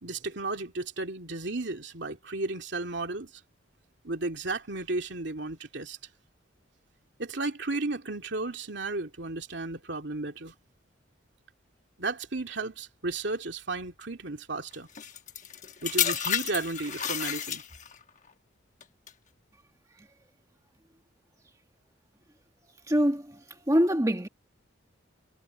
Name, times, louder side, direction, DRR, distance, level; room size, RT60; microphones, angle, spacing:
voice 1, 0.0-3.3 4.0-6.0 7.2-10.5 12.0-14.9 15.8-17.6, right 2 dB, 60° right, 2.7 m, -34 dB
sound 1, 14.9-18.0 18.8-19.1, left 9 dB, 40° left, 1.1 m, -31 dB
voice 2, 22.9-24.3, equal, 15° right, 1.6 m, -25 dB
head